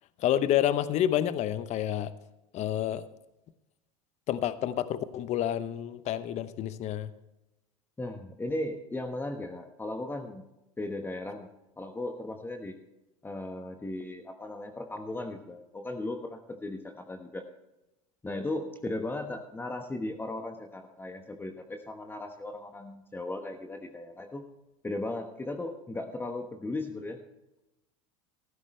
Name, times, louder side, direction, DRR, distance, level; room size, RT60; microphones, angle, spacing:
voice 1, 0.2-2.1 2.5-3.1 4.3-7.1, left 11 dB, 40° left, 0.8 m, -29 dB
voice 2, 8.0-10.4 10.8-11.5 11.8-12.7 13.2-17.5 18.2-24.4 24.8-27.2, left 2 dB, 10° left, 1.2 m, -36 dB
14.5 x 12.5 x 3.2 m
hypercardioid pair, 95°, 17 cm